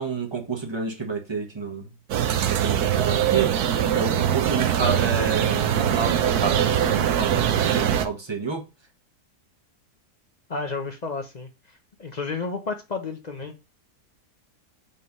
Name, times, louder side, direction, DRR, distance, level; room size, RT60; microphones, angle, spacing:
voice 1, 0.0-1.8 2.4-3.5 3.9-8.6, right 4 dB, 20° right, 1.2 m, -29 dB
sound 1, 2.1-8.1, right 10 dB, 75° right, 1.2 m, -22 dB
voice 2, 10.5-13.6, left 4 dB, 40° left, 0.6 m, -32 dB
5.5 x 3.3 x 5.3 m
omnidirectional pair, 1.7 m